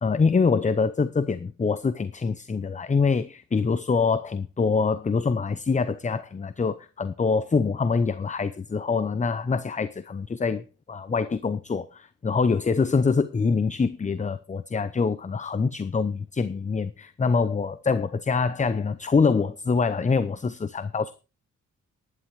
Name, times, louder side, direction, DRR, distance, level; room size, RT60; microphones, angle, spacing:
voice 1, 0.0-21.1, left 4 dB, 25° left, 0.7 m, -25 dB
11.5 x 11.0 x 4.7 m
cardioid pair, 115°, 32 cm